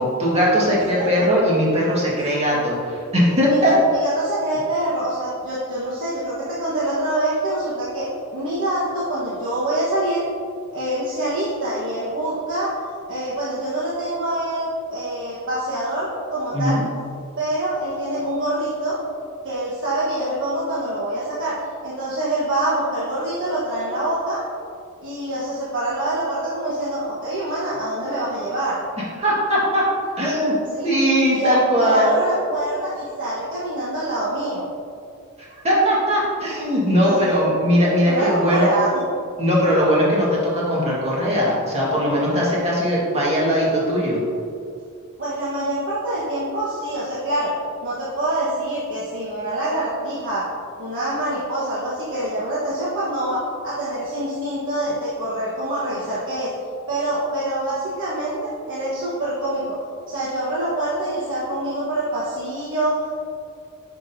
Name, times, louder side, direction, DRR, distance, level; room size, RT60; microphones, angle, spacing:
voice 1, 0.0-3.7 16.5-16.8 29.2-29.8 30.2-30.5 30.8-32.2 35.6-38.7 39.4-44.2, equal, 30° right, -5 dB, 1.8 m, -19 dB
voice 2, 0.9-1.2 2.3-2.4 3.4-10.2 10.7-12.7 13.1-16.8 17.4-19.0 19.4-21.6 21.8-24.4 25.0-28.8 30.7-30.9 31.3-34.7 37.0-37.3 38.1-39.0 45.2-47.5 47.8-50.4 50.8-56.5 56.9-59.8 60.1-63.1, right 1 dB, 60° right, -9 dB, 1.4 m, -25 dB
9.2 x 6.3 x 2.7 m, 2.4 s
head